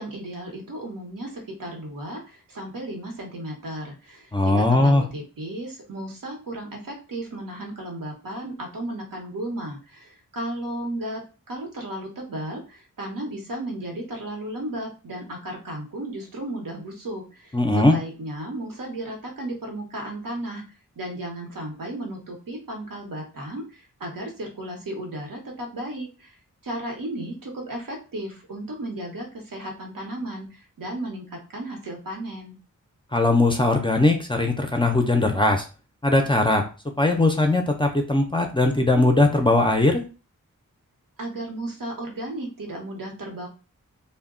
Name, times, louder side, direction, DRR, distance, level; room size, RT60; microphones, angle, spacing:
voice 1, 0.0-11.2 11.5-20.6 21.0-26.4 26.6-32.6 41.2-43.5, right 1 dB, 75° right, 2 dB, 0.9 m, -34 dB
voice 2, 4.3-5.0 17.5-17.9 33.1-35.7 36.0-36.6 37.0-40.0, left 2 dB, 15° left, 3 dB, 0.4 m, -20 dB
2.2 x 2.1 x 3.6 m, 0.34 s
wide cardioid pair, 95°, 33 cm